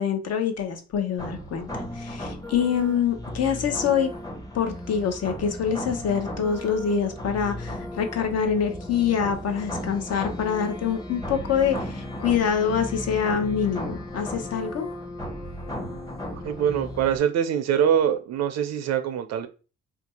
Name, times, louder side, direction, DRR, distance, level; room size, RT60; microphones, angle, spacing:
voice 1, 0.0-4.1 4.5-14.9, left 7 dB, 55° left, 0.8 m, -25 dB
sound 1, 1.2-17.2, left 1 dB, 10° left, 0.8 m, -35 dB
voice 2, 16.4-19.5, right 9 dB, 60° right, 0.4 m, -23 dB
2.5 x 2.3 x 4.1 m
cardioid pair, 90°, 30 cm